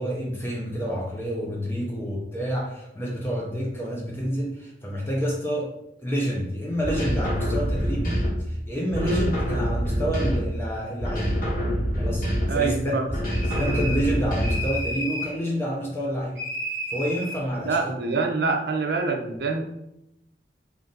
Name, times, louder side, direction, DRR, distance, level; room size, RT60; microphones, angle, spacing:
voice 1, 0.0-5.7 6.0-11.4 12.0-13.2 13.4-16.4 16.9-17.9, equal, 15° left, -3 dB, 0.6 m, -29 dB
sound 1, 6.8-8.5 8.9-10.7 11.0-12.7 13.1-14.8, equal, 50° left, 1.2 m, -26 dB
voice 2, 9.0-9.3 12.5-13.1 17.6-19.6, right 3 dB, 65° right, 3 dB, 0.5 m, -25 dB
sound 2, 13.3-14.1 14.4-15.4 16.4-17.4, equal, 10° right, 1.2 m, -32 dB
3.7 x 2.5 x 3.9 m, 0.84 s
head